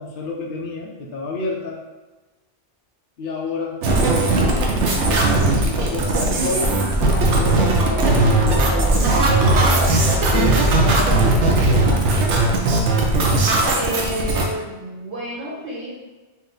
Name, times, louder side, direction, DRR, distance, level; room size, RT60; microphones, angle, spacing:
voice 1, 0.0-1.8 3.2-6.8 7.3-11.9, left 3 dB, 60° left, -1 dB, 0.8 m, -30 dB
sound 1, 3.8-14.4, right 2 dB, 75° right, 1.0 m, -18 dB
sound 2, 6.9-12.0, equal, 30° left, 0.4 m, -23 dB
voice 2, 13.6-15.9, right 1 dB, 60° right, -9 dB, 1.7 m, -29 dB
4.2 x 2.5 x 3.9 m, 1.1 s
omnidirectional pair, 1.2 m